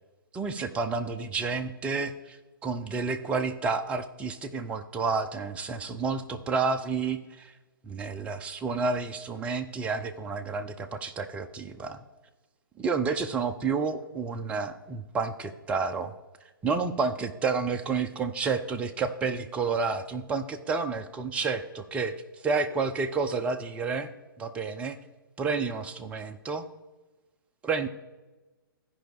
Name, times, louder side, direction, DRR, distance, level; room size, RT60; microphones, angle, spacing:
voice 1, 0.3-7.5 7.8-12.0 12.8-16.1 16.6-24.1 24.4-25.0 25.4-26.7 27.6-27.9, right 4 dB, 10° right, 7 dB, 0.4 m, -30 dB
14.5 x 5.1 x 3.5 m, 1.2 s
figure-of-eight pair, 125°, 12 cm